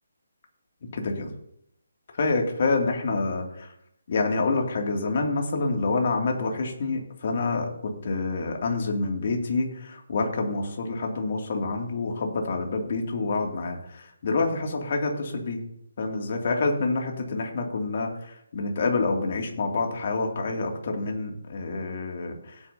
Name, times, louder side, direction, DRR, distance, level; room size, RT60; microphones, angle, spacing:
voice 1, 0.9-1.3 2.2-3.7 4.1-7.7 8.0-15.6 16.0-22.5, left 3 dB, 50° left, 2 dB, 2.5 m, -27 dB
16.5 x 8.8 x 2.8 m, 0.73 s
figure-of-eight pair, 155°, 0 cm